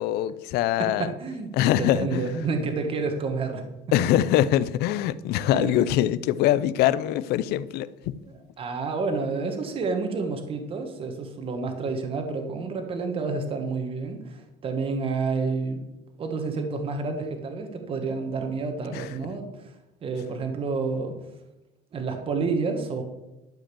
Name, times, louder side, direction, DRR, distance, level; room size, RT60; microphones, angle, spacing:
voice 1, 0.0-1.1 1.5-2.2 3.9-8.1 18.9-19.1, left 12 dB, 60° left, 0.5 m, -23 dB
voice 2, 0.8-1.5 1.7-3.6 5.5-6.0 8.3-15.8 16.2-19.7 20.0-21.2 21.9-23.0, right 4 dB, 30° right, 1.4 m, -29 dB
12.0 x 5.2 x 6.9 m
cardioid pair, 165°, 18 cm